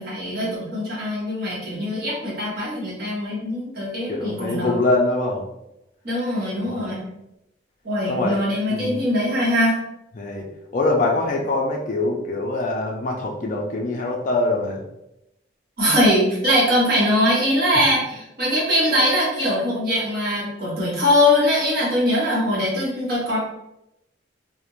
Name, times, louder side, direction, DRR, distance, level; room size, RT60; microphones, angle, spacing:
voice 1, 0.0-4.7 6.0-7.0 7.8-9.7 15.8-23.4, left 1 dB, 50° right, -5 dB, 0.9 m, -21 dB
voice 2, 4.1-5.5 6.6-6.9 8.1-8.4 8.7-9.0 10.2-10.5 10.7-14.8, left 2 dB, 40° left, -1 dB, 0.3 m, -23 dB
2.4 x 2.0 x 2.9 m, 0.86 s
head